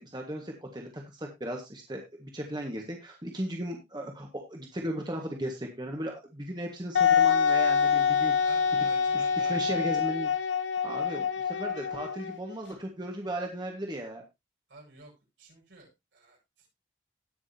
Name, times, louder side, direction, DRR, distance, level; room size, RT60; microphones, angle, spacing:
voice 1, 0.0-8.3 9.1-9.2 9.5-10.3 10.8-14.2, right 1 dB, 25° right, 1 dB, 1.6 m, -36 dB
Wind instrument woodwind instrument, 6.9-12.5, left 6 dB, 90° left, 1.0 m, -26 dB
voice 2, 8.4-9.7 14.7-15.1 15.4-16.7, right 3 dB, 85° right, -2 dB, 7.7 m, -51 dB
18.0 x 6.2 x 2.8 m, 0.22 s
head